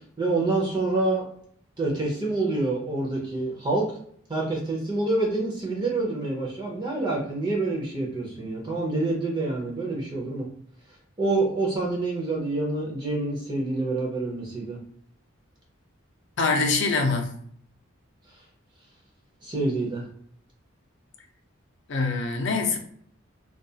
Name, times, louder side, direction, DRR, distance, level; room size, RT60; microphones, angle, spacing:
voice 1, 0.2-1.3 1.8-3.9 4.3-10.5 11.2-14.8 19.4-20.0, right 2 dB, 20° right, 0.5 m, -27 dB
voice 2, 16.4-17.3 21.9-22.8, left 3 dB, 60° left, 0.5 m, -24 dB
2.3 x 2.3 x 2.7 m
head